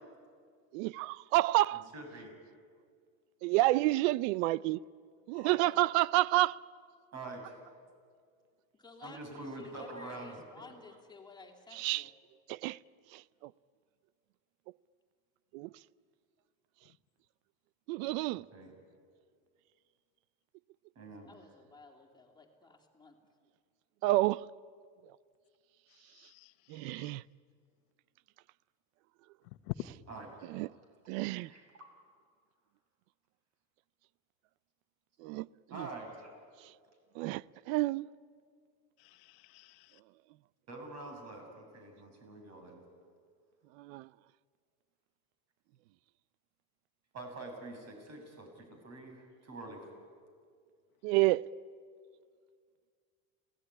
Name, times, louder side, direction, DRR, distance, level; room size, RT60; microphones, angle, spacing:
voice 1, 0.7-1.9 3.4-4.8 5.3-6.6 11.8-12.0 12.5-12.8 13.1-13.5 15.5-15.7 17.9-18.4 24.0-24.5 26.7-27.2 30.5-30.7 31.1-31.5 35.2-35.5 35.8-35.9 37.2-38.1 43.8-44.1 51.0-51.5, right 18 dB, 70° right, 0.7 m, -29 dB
voice 2, 1.7-2.3 5.3-5.6 7.1-7.6 9.0-10.4 18.3-18.7 21.0-21.3 30.1-30.5 31.4-31.8 35.7-36.3 40.7-42.8 47.1-49.9, right 2 dB, 40° right, 7.5 m, -46 dB
voice 3, 8.7-12.1 21.3-23.2, left 3 dB, 10° left, 3.1 m, -54 dB
voice 4, 26.1-27.1 29.6-29.7 39.0-40.0, left 23 dB, 70° left, 1.2 m, -46 dB
28.5 x 18.0 x 10.0 m
supercardioid pair, 130°, 41 cm